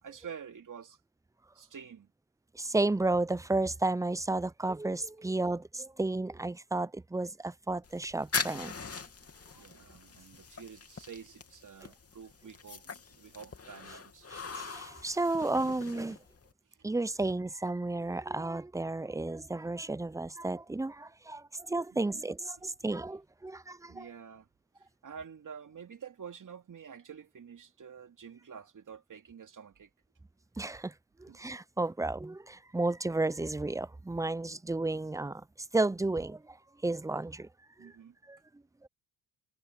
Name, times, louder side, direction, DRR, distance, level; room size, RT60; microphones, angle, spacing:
voice 1, 0.0-1.0 1.5-2.1 9.5-14.3 21.9-22.2 23.9-24.5 24.8-29.9 31.3-31.4 37.8-38.2, right 7 dB, 40° right, 2.9 m, -48 dB
voice 2, 2.5-8.7 14.3-16.2 16.8-24.1 30.6-30.9 31.2-35.4 35.7-36.6 36.8-37.5 37.8-37.9 38.3-38.4 38.8-38.9, right 2 dB, 5° right, 0.6 m, -32 dB
sound 1, 7.8-16.5, left 5 dB, 30° left, 2.9 m, -41 dB
supercardioid pair, 65°, 47 cm